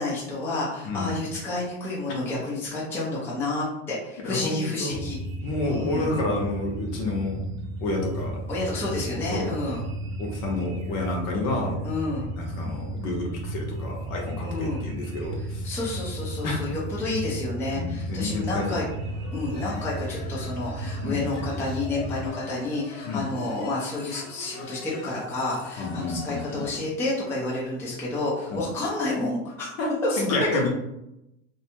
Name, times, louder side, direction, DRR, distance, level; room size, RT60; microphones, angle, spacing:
voice 1, 0.0-5.2 5.6-6.1 8.5-9.8 11.8-12.3 14.4-14.8 15.6-18.8 19.3-29.7 30.0-30.2, left 2 dB, 5° left, -7 dB, 0.4 m, -30 dB
voice 2, 4.2-5.0 5.4-7.4 7.8-8.4 9.1-9.6 10.2-11.8 12.3-15.8 16.4-16.6 17.7-18.6 21.0-21.3 23.1-23.3 25.8-26.6 28.5-28.6 29.8-30.7, left 2 dB, 50° left, 0 dB, 0.7 m, -29 dB
sound 1, 4.9-22.3, right 2 dB, 60° right, 0.5 m, -34 dB
sound 2, 19.0-26.9, left 3 dB, 80° left, 0.9 m, -43 dB
2.6 x 2.2 x 2.8 m, 0.87 s
supercardioid pair, 140°, 37 cm